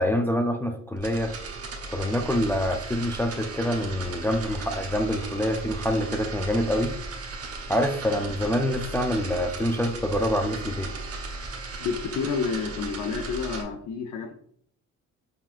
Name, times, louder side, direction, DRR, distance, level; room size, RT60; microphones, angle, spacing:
voice 1, 0.0-1.3 1.9-6.9 7.7-10.9, equal, 5° left, 4 dB, 0.4 m, -26 dB
sound 1, 1.0-13.6, right 3 dB, 50° right, 1.0 m, -36 dB
voice 2, 11.8-14.3, left 5 dB, 70° left, 3 dB, 0.6 m, -29 dB
5.2 x 3.8 x 2.4 m, 0.63 s
cardioid pair, 90°, 30 cm